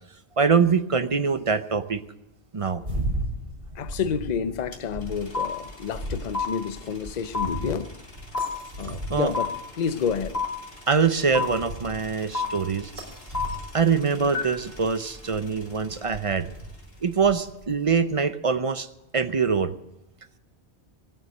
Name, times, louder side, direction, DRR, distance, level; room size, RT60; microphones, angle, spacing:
voice 1, 0.4-2.0 2.5-2.8 9.1-9.3 10.9-12.9 13.7-16.5 17.0-18.9 19.1-19.7, right 5 dB, 35° right, 0.7 m, -23 dB
sound 1, 2.8-17.9, right 1 dB, 55° right, 4.2 m, -37 dB
voice 2, 3.8-7.9 8.8-9.5 9.8-10.4, left 6 dB, 45° left, 0.7 m, -29 dB
sound 2, 4.7-4.8 5.0-16.2, left 4 dB, 65° left, 3.2 m, -31 dB
19.0 x 9.2 x 6.6 m
omnidirectional pair, 1.1 m